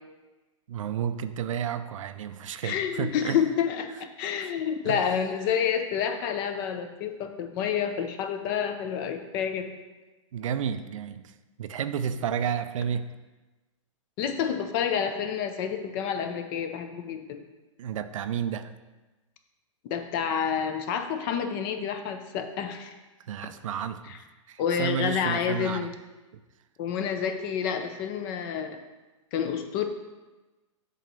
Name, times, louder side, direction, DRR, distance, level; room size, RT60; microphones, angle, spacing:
voice 1, 0.7-3.4 4.4-4.5 4.8-5.1 10.3-13.1 17.8-18.7 23.3-24.1 24.5-25.9, right 8 dB, 75° right, 10 dB, 0.5 m, -31 dB
voice 2, 2.6-3.9 4.2-9.7 14.2-17.4 19.8-22.9 24.1-24.2 24.6-25.9 26.8-28.8 29.3-29.8, left 8 dB, 40° left, 7 dB, 0.7 m, -29 dB
7.5 x 3.1 x 5.3 m, 1.2 s
hypercardioid pair, 125°, 17 cm